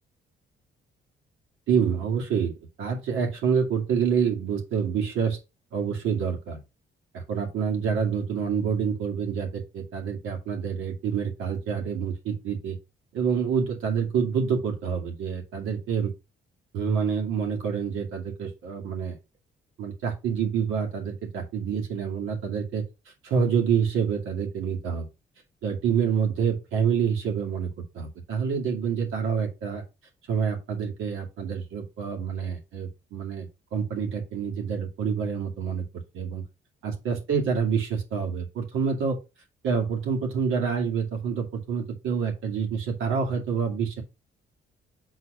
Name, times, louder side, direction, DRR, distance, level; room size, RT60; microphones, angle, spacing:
voice 1, 1.7-2.5 2.8-5.4 5.7-6.6 7.1-12.8 13.1-16.1 16.7-19.2 19.8-22.8 23.2-25.1 25.6-29.8 30.3-35.8 36.1-36.4 36.8-39.2 39.6-44.0, right 6 dB, 85° right, 1 dB, 2.5 m, -27 dB
7.0 x 4.0 x 5.0 m, 0.27 s
cardioid pair, 90°, 20 cm